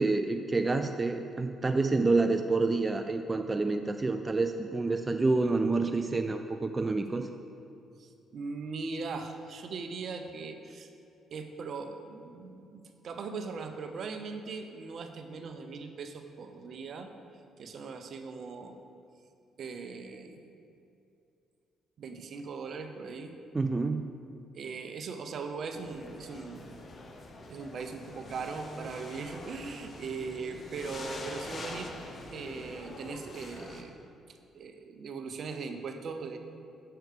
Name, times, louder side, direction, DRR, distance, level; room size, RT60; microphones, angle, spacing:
voice 1, 0.0-7.3 23.5-24.0, right 3 dB, 30° right, 7 dB, 0.4 m, -28 dB
voice 2, 8.0-10.9 11.3-17.1 17.6-18.8 19.6-20.4 22.0-23.3 24.5-26.8 27.5-34.0 34.5-36.4, right 4 dB, 60° right, 6 dB, 0.6 m, -40 dB
sound 1, 25.7-33.8, left 2 dB, 45° left, 0.8 m, -45 dB
6.7 x 4.5 x 6.6 m, 2.6 s
supercardioid pair, 55°, 0 cm